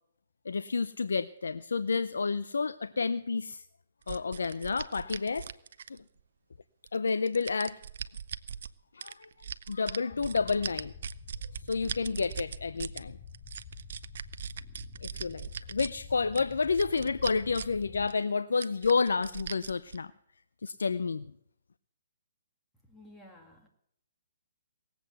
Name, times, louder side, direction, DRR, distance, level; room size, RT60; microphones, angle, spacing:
voice 1, 0.5-3.6 4.1-5.5 5.9-6.0 6.9-7.8 8.9-9.3 9.7-10.9 11.6-13.2 15.0-20.1 20.6-21.3, left 4 dB, 85° left, 0.5 m, -30 dB
sound 1, 4.1-6.2 6.9-8.7 9.0-13.0 13.3-15.9 16.3-17.8 18.1-18.2 18.6-20.0, right 7 dB, 65° right, 0.6 m, -40 dB
sound 2, 10.1-18.1, left 6 dB, 30° left, 1.9 m, -48 dB
voice 2, 22.8-23.7, left 1 dB, 5° left, 2.2 m, -53 dB
18.5 x 8.0 x 8.0 m
hypercardioid pair, 150°, 0 cm